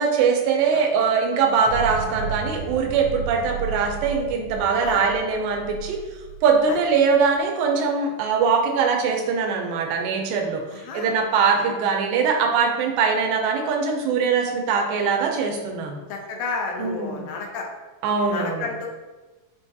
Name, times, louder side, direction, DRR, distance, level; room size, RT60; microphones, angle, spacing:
voice 1, 0.0-6.0 6.4-10.6 10.9-16.0 16.8-17.3 18.0-18.7, right 5 dB, 85° right, 2 dB, 2.3 m, -22 dB
sound 1, 1.7-7.3, right 7 dB, 65° right, 1.8 m, -33 dB
voice 2, 10.7-11.1 16.1-17.7 18.3-18.9, left 4 dB, 85° left, 1 dB, 2.4 m, -31 dB
5.8 x 2.3 x 2.7 m, 1.2 s
omnidirectional pair, 4.0 m